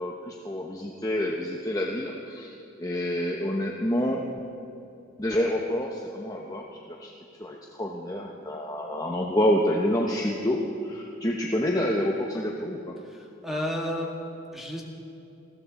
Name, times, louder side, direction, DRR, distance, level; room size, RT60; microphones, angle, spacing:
voice 1, 0.0-4.3 5.2-7.1 7.4-12.9, left 1 dB, 15° left, -1 dB, 0.9 m, -28 dB
voice 2, 13.0-14.8, equal, ahead, -1 dB, 1.9 m, -32 dB
20.5 x 15.5 x 4.2 m, 2.7 s
head